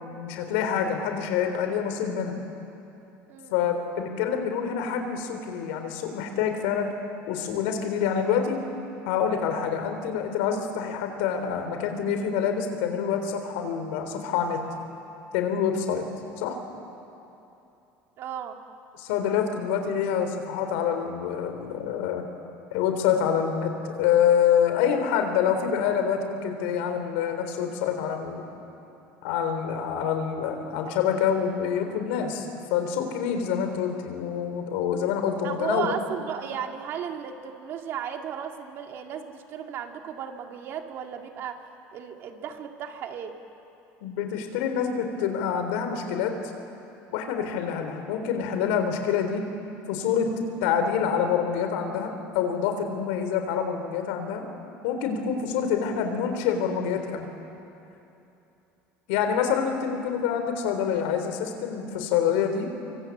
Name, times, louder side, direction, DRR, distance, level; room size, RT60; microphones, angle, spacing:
voice 1, 0.0-2.3 3.5-6.9 7.3-8.6 9.0-14.6 15.3-16.0 16.4-16.6 19.0-22.2 22.7-28.4 29.2-36.0 44.0-46.4 47.1-49.4 49.9-50.3 50.6-54.4 54.8-57.3 59.1-62.7, left 7 dB, 90° left, 6 dB, 3.8 m, -26 dB
voice 2, 18.2-18.6 35.4-41.6 41.9-43.4, right 8 dB, 45° right, 4 dB, 2.1 m, -35 dB
27.0 x 24.5 x 8.6 m, 2.9 s
cardioid pair, 160°, 6 cm